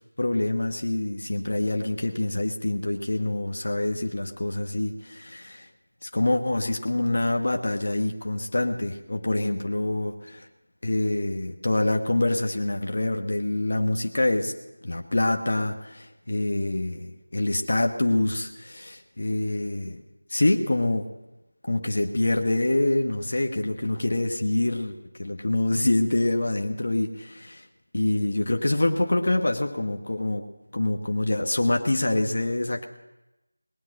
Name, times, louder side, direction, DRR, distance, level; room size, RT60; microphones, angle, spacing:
voice 1, 0.2-5.7 6.0-10.1 10.8-14.5 14.8-20.0 20.3-21.1 21.7-27.6 27.9-30.5 30.7-32.8, left 2 dB, 55° left, 4 dB, 1.3 m, -26 dB
19.5 x 9.3 x 6.4 m, 0.99 s
figure-of-eight pair, 175°, 0 cm